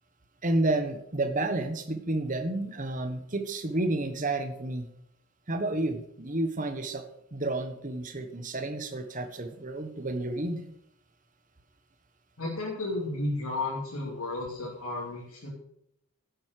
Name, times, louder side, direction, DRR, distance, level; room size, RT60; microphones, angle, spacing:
voice 1, 0.4-4.9 5.5-7.0 7.3-10.6, right 2 dB, 35° right, 8 dB, 1.3 m, -30 dB
voice 2, 12.4-15.5, left 2 dB, 80° left, -5 dB, 2.9 m, -33 dB
10.5 x 7.9 x 6.6 m, 0.74 s
head